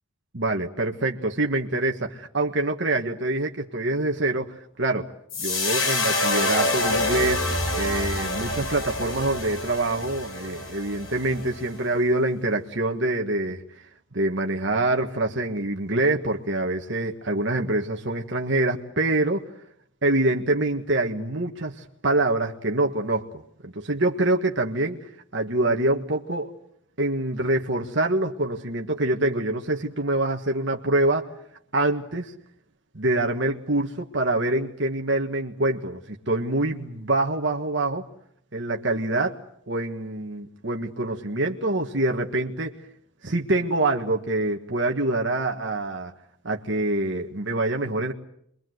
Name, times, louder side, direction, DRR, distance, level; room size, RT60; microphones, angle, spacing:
voice 1, 0.3-5.1 5.4-13.8 14.1-19.5 20.0-26.5 27.0-31.2 31.7-32.3 32.9-38.0 38.5-39.4 39.7-42.8 43.2-46.1 46.4-48.1, right 2 dB, 55° right, 2 dB, 1.6 m, -25 dB
sound 1, 5.3-11.7, left 2 dB, 75° left, 5.3 m, -27 dB
30.0 x 23.5 x 8.0 m, 0.71 s
head